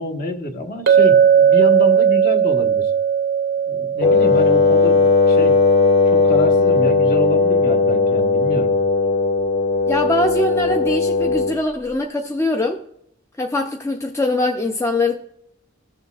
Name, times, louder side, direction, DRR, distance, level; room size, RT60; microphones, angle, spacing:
voice 1, 0.0-2.9 3.7-5.6 6.1-8.7, left 1 dB, 45° left, 1.2 m, -27 dB
Chink clink, 0.9-5.0, right 8 dB, 55° right, 0.6 m, -16 dB
Wind instrument woodwind instrument, 4.0-11.6, left 3 dB, 90° left, 3.2 m, -17 dB
voice 2, 9.9-12.8 13.4-15.2, left 2 dB, 15° left, 0.5 m, -22 dB
15.5 x 6.6 x 2.3 m
head